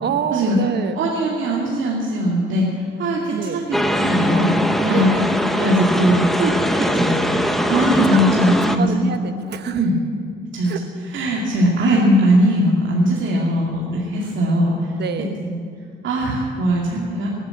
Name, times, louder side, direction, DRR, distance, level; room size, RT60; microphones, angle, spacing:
voice 1, 0.0-1.0 3.3-3.6 4.9-5.3 8.0-9.9 10.6-10.8 15.0-15.3, right 7 dB, 60° right, 8 dB, 1.1 m, -26 dB
voice 2, 1.0-4.5 4.8-5.1 5.5-7.4 7.7-9.1 9.7-9.9 10.5-10.7 11.1-14.9 15.4-15.6 16.0-17.3, equal, 75° right, -3 dB, 2.4 m, -20 dB
sound 1, 3.7-8.8, equal, ahead, 1.1 m, -20 dB
18.0 x 9.9 x 7.8 m, 2.3 s
cardioid pair, 90°, 20 cm